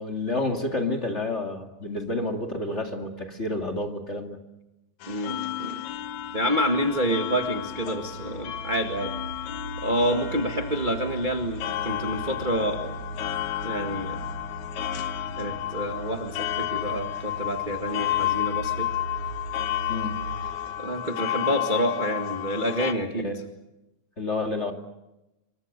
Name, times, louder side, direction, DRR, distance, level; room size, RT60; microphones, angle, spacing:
voice 1, 0.0-4.4 19.9-20.1 23.2-23.4 24.2-24.7, left 2 dB, 25° left, 3 dB, 2.4 m, -29 dB
sound 1, 5.0-22.9, left 13 dB, 75° left, 2.4 m, -32 dB
voice 2, 5.1-5.8 6.3-9.1 9.8-13.0 13.6-14.2 15.4-18.9 20.8-23.3, equal, 20° right, 3 dB, 1.4 m, -28 dB
sound 2, 5.9-20.8, right 2 dB, 70° right, 3.9 m, -40 dB
27.5 x 24.0 x 6.8 m, 0.96 s
omnidirectional pair, 3.4 m